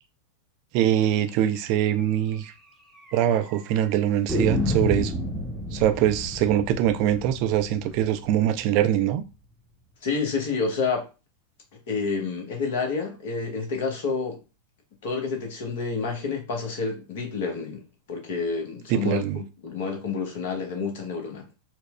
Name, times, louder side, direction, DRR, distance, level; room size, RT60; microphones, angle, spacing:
voice 1, 0.7-2.5 3.1-5.1 5.7-9.2 18.9-19.4, right 11 dB, 45° right, 0.4 m, -23 dB
sound 1, 1.5-1.6 1.9-2.0 2.3-2.4 3.1-3.6 4.3-9.1, left 1 dB, 5° left, 0.8 m, -31 dB
voice 2, 10.0-11.1 11.9-14.4 15.0-21.6, left 4 dB, 55° left, 0.9 m, -29 dB
4.2 x 2.1 x 2.3 m
figure-of-eight pair, 90°, 0 cm